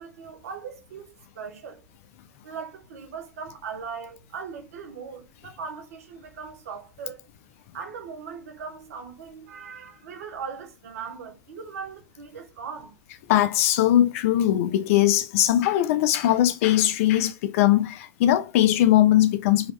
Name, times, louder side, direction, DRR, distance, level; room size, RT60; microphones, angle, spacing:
voice 1, 0.0-1.9 2.4-7.2 7.7-13.0, right 6 dB, 75° right, 0.7 m, -39 dB
voice 2, 13.3-19.7, left 13 dB, 65° left, 0.3 m, -20 dB
3.0 x 2.7 x 3.0 m
hypercardioid pair, 90°, 8 cm